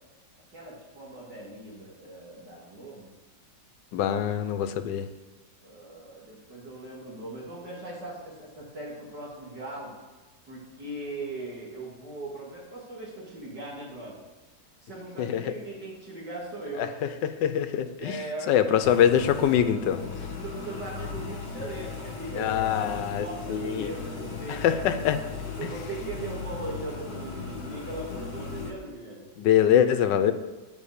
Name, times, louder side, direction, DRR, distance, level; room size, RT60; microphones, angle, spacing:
voice 1, 0.5-3.1 5.6-9.9 10.5-14.2 14.8-16.9 18.0-18.8 20.2-24.7 25.6-29.3, right 2 dB, 70° right, -5 dB, 2.8 m, -39 dB
voice 2, 3.9-5.0 15.2-15.5 16.8-16.9 17.4-18.2 18.5-20.0 22.4-23.9 24.5-25.2 29.4-30.3, left 9 dB, 85° left, 10 dB, 1.4 m, -24 dB
sound 1, 18.8-28.7, left 4 dB, 60° left, 1.9 m, -37 dB
8.8 x 5.4 x 6.5 m, 1.2 s
omnidirectional pair, 1.9 m